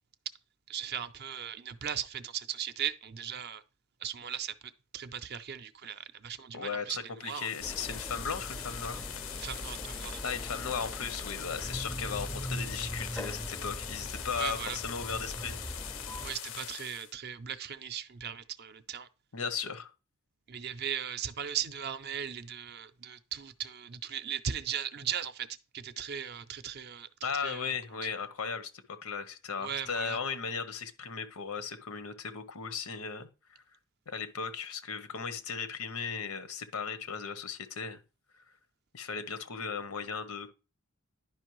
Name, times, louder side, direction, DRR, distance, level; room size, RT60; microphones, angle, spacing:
voice 1, 0.7-3.6 4.0-4.5 4.9-7.5 9.3-10.2 14.3-14.8 16.2-19.1 20.5-25.5 25.7-27.7 28.0-28.2 29.6-30.2, right 8 dB, 50° right, 0.5 m, -38 dB
voice 2, 6.5-9.1 10.2-15.6 19.3-19.9 27.2-33.3 34.1-38.0 38.9-40.5, left 6 dB, 85° left, 0.8 m, -36 dB
sound 1, 7.2-17.1, left 10 dB, 65° left, 0.5 m, -42 dB
sound 2, 7.6-16.3, equal, 5° left, 0.4 m, -41 dB
10.5 x 5.2 x 3.0 m
head